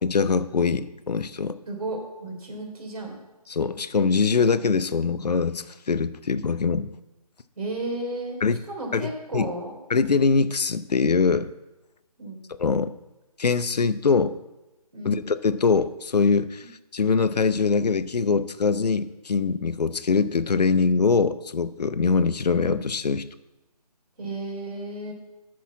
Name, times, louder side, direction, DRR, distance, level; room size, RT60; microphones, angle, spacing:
voice 1, 0.0-1.6 3.5-6.9 8.4-8.6 8.9-9.0 9.3-9.5 9.9-11.5 12.6-12.9 13.4-14.3 15.0-16.6 16.9-23.3, left 5 dB, 85° left, 13 dB, 0.7 m, -23 dB
voice 2, 1.7-3.2 7.6-8.4 8.7-9.7 12.2-12.4 14.9-15.2 24.2-25.1, right 2 dB, 65° right, 1 dB, 3.2 m, -33 dB
8.3 x 6.2 x 7.2 m, 1.0 s
hypercardioid pair, 170°, 20 cm